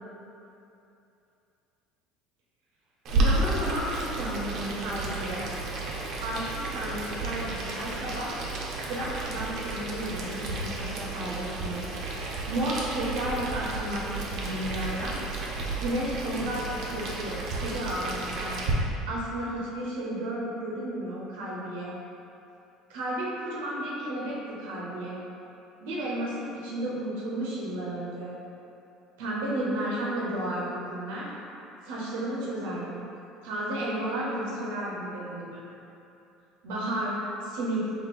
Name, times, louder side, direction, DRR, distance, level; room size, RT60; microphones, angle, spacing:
Boiling, 3.0-18.7, right 2 dB, 55° right, 0.7 m, -32 dB
voice 1, 3.1-5.4 6.2-8.3 8.9-11.8 12.5-15.1 15.8-18.5 19.1-22.0 22.9-25.2 25.8-28.3 29.2-31.3 31.8-33.0 33.4-35.6 36.6-37.9, right 1 dB, 90° right, -5 dB, 0.8 m, -32 dB
3.8 x 2.8 x 4.1 m, 2.8 s
supercardioid pair, 115°, 0 cm